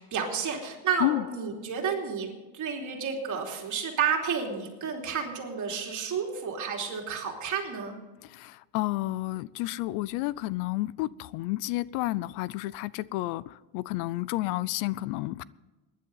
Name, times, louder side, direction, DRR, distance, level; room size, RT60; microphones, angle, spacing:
voice 1, 0.0-8.0, right 6 dB, 40° right, 3.1 m, -31 dB
voice 2, 8.3-13.4 13.7-15.4, left 18 dB, 85° left, 0.6 m, -30 dB
20.0 x 10.5 x 4.0 m
cardioid pair, 135°, 47 cm